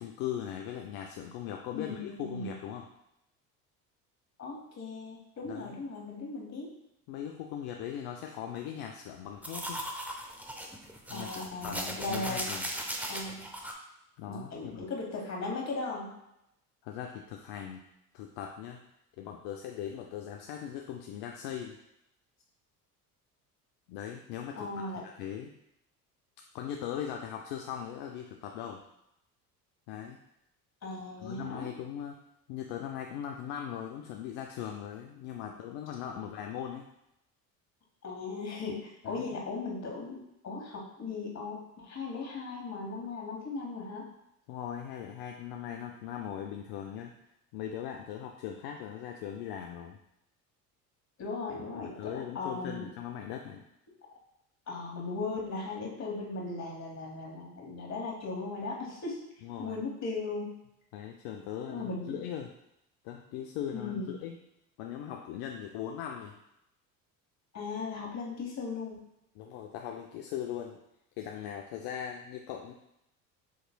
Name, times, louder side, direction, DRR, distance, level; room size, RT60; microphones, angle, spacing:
voice 1, 0.0-2.9 5.4-5.8 7.1-9.8 11.1-12.7 14.2-14.9 16.8-17.8 18.1-18.8 19.2-21.8 23.9-25.5 26.5-28.8 29.9-30.2 31.2-32.2 32.5-36.9 39.0-39.4 44.5-47.1 47.5-50.0 51.7-53.6 59.4-59.8 60.9-62.5 63.0-64.4 64.8-66.4 69.3-70.8 71.2-72.7, left 9 dB, 65° left, 2 dB, 0.6 m, -39 dB
voice 2, 1.7-2.5 4.4-6.7 11.1-12.4 13.1-13.5 14.2-16.1 24.6-25.0 30.8-31.7 36.1-36.2 38.0-44.1 51.2-52.9 54.7-59.2 59.6-60.5 61.7-62.2 63.7-64.1 67.5-69.0, left 3 dB, 35° left, -2 dB, 1.7 m, -37 dB
sound 1, 9.4-13.7, equal, 5° right, 0.6 m, -38 dB
7.3 x 3.1 x 2.2 m, 0.83 s
hypercardioid pair, 70°, 44 cm